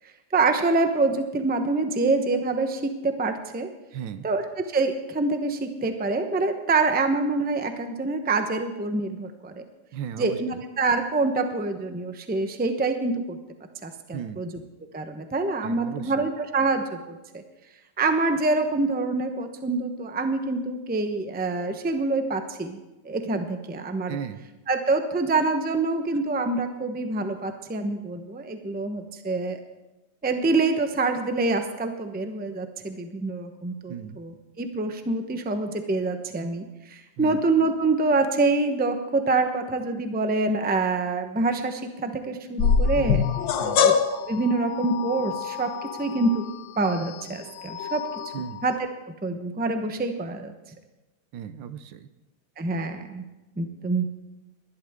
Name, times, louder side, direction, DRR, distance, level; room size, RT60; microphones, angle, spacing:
voice 1, 0.3-3.7 4.2-4.4 4.7-9.6 10.2-10.5 10.8-13.4 13.8-14.5 14.9-17.4 18.0-22.8 23.0-24.2 24.7-29.6 30.2-43.2 43.8-43.9 44.2-45.7 46.0-46.4 46.8-48.1 48.6-48.9 49.2-50.5 52.6-53.2 53.6-54.1, right 3 dB, 10° right, 6 dB, 0.5 m, -26 dB
voice 2, 3.9-4.3 9.9-10.4 14.1-14.4 15.6-16.3 24.1-24.4 33.9-34.2 37.2-37.4 43.6-43.8 48.3-48.6 51.3-52.1, right 8 dB, 90° right, 11 dB, 1.5 m, -36 dB
sound 1, 42.6-48.8, left 6 dB, 85° left, 1.6 m, -26 dB
20.5 x 11.5 x 3.6 m, 1.0 s
omnidirectional pair, 2.0 m